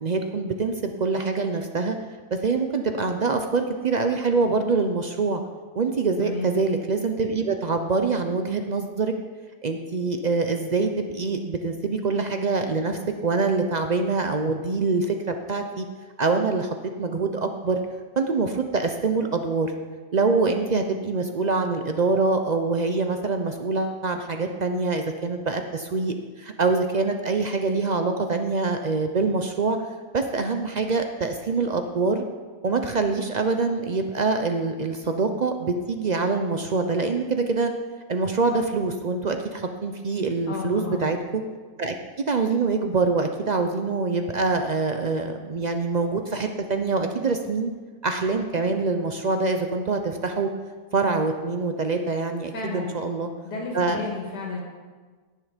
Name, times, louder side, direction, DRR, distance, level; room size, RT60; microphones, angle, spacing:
voice 1, 0.0-2.0 2.4-5.4 5.7-9.1 9.6-15.9 16.2-16.7 17.0-17.8 18.2-19.7 20.1-29.8 30.1-32.2 32.6-37.7 38.1-41.4 41.8-42.0 42.3-47.7 48.0-50.5 50.9-53.3 53.7-54.0, right 4 dB, 75° right, 5 dB, 0.4 m, -25 dB
voice 2, 40.5-41.1 52.5-53.0 53.4-54.6, left 3 dB, 90° left, -2 dB, 2.5 m, -32 dB
17.5 x 6.6 x 5.0 m, 1.4 s
omnidirectional pair, 1.7 m